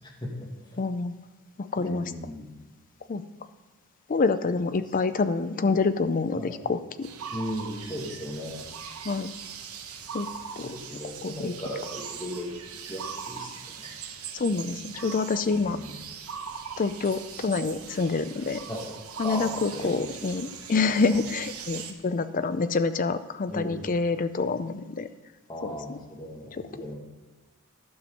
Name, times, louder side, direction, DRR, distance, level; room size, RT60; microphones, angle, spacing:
voice 1, 0.0-0.3 1.8-2.5 6.3-6.6 7.3-8.6 10.6-12.5 12.9-13.5 13.8-13.9 15.5-15.9 18.7-18.9 19.2-20.2 21.1-21.2 23.5-23.9 25.5-27.0, equal, 20° left, -1 dB, 1.8 m, -37 dB
voice 2, 0.8-1.1 1.7-2.1 3.1-3.2 4.1-7.1 9.1-9.3 10.1-10.3 10.6-10.7 11.2-11.5 14.3-15.8 16.8-18.6 19.2-25.1 25.6-25.8, left 4 dB, 40° left, 12 dB, 0.4 m, -27 dB
sound 1, 7.0-21.9, right 7 dB, 80° right, 0.9 m, -40 dB
12.0 x 6.2 x 5.3 m, 1.3 s
head